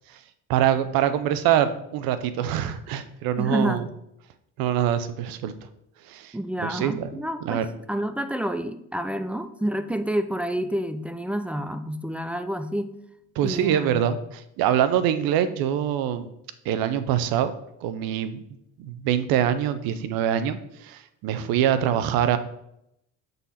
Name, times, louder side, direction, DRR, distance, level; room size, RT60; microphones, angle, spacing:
voice 1, 0.5-3.8 4.6-5.5 6.1-6.3 6.6-7.7 13.4-16.3 16.6-17.5 17.8-18.4 18.8-22.4, right 10 dB, 75° right, 12 dB, 0.7 m, -24 dB
voice 2, 3.4-3.9 6.3-7.6 7.9-13.0 13.4-14.0, right 1 dB, 5° right, 10 dB, 0.4 m, -29 dB
7.2 x 4.0 x 4.1 m, 0.79 s
supercardioid pair, 80°, 35 cm